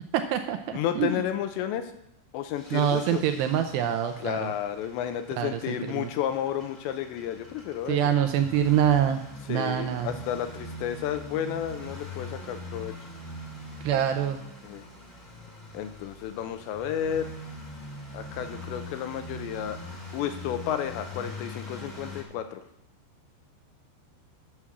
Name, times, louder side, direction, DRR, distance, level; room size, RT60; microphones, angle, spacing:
voice 1, 0.1-1.1 2.7-4.5 5.4-6.1 7.9-9.2 9.5-10.1 13.8-14.4, right 9 dB, 80° right, 6 dB, 2.5 m, -25 dB
voice 2, 0.7-1.9 2.3-3.2 4.2-8.1 9.5-12.9 14.6-14.8 15.7-17.3 18.1-19.8 20.1-22.6, left 10 dB, 85° left, 8 dB, 2.9 m, -32 dB
sound 1, 2.5-22.2, left 1 dB, 25° left, 0.8 m, -43 dB
9.9 x 7.1 x 6.2 m, 0.79 s
omnidirectional pair, 5.3 m